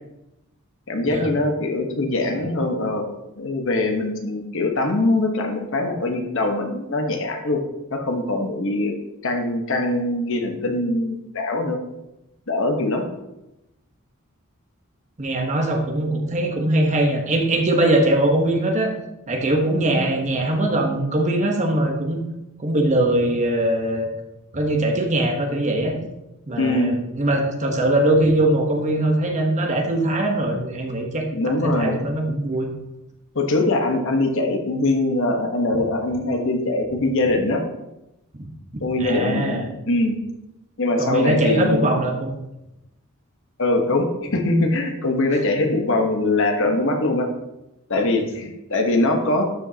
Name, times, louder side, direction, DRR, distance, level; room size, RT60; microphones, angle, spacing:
voice 1, 0.9-3.0 3.4-7.6 7.9-8.9 9.2-11.8 12.5-13.0 26.6-26.9 31.3-32.0 33.3-37.6 38.8-40.2 40.8-42.0 43.6-47.3 47.9-49.4, left 2 dB, 65° left, 3 dB, 1.1 m, -22 dB
voice 2, 15.2-18.9 19.3-22.2 22.6-24.1 24.5-25.9 26.5-32.7 38.4-38.5 39.0-39.6 41.0-42.3, right 1 dB, 35° right, 2 dB, 1.1 m, -21 dB
12.0 x 5.3 x 2.8 m, 0.91 s
head